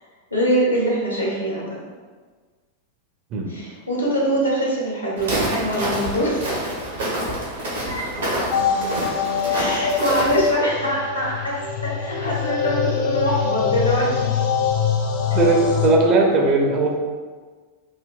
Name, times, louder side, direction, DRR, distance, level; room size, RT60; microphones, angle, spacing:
voice 1, 0.3-1.7 3.5-6.9 7.9-8.0 8.3-8.5 9.5-14.1, equal, 85° left, -5 dB, 0.8 m, -23 dB
Walk footsteps, 5.2-10.5, right 1 dB, 65° right, 0.7 m, -27 dB
sound 1, 8.5-15.9, left 6 dB, 50° left, 0.4 m, -24 dB
voice 2, 15.3-17.0, right 2 dB, 35° right, 1 dB, 0.4 m, -18 dB
3.3 x 2.1 x 2.3 m, 1.4 s
figure-of-eight pair, 90°, 0 cm